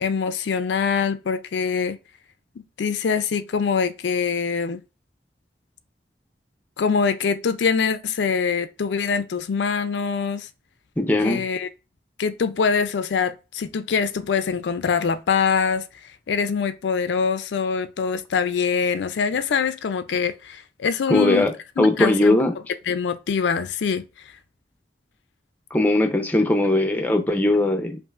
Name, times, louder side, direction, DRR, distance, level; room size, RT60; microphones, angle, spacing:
voice 1, 0.0-2.0 2.8-4.8 6.8-10.5 11.2-11.7 12.2-15.9 16.3-21.5 21.8-22.4 22.9-24.0, left 6 dB, 80° left, 0.4 m, -24 dB
voice 2, 11.0-11.4 21.1-22.6 25.7-28.0, left 2 dB, 10° left, 0.5 m, -20 dB
5.4 x 2.5 x 2.4 m
head